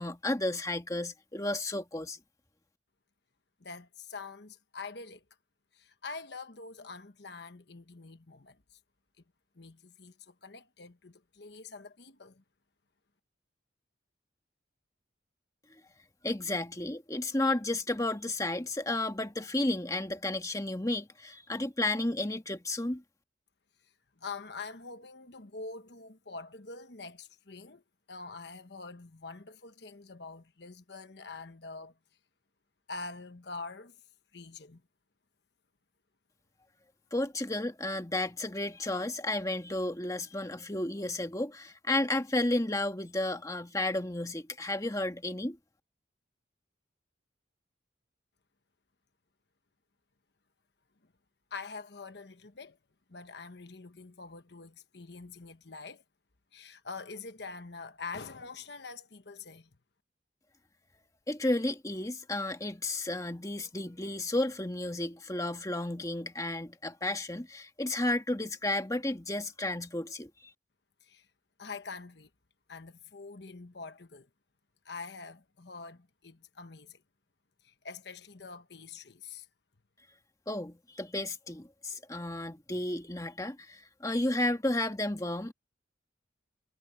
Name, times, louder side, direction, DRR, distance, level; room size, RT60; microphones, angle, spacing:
voice 1, 0.0-2.2 16.2-23.0 37.1-45.6 61.3-70.3 80.5-85.5, left 1 dB, 15° left, 1.6 m, -32 dB
voice 2, 3.6-5.2 5.7-8.8 9.6-12.4 24.2-27.8 28.1-31.9 32.9-34.0 34.3-34.8 51.5-52.8 53.1-56.0 56.5-59.7 71.0-71.3 71.6-72.3 72.7-74.3 74.8-77.0 77.6-79.5, left 4 dB, 60° left, 1.2 m, -45 dB
head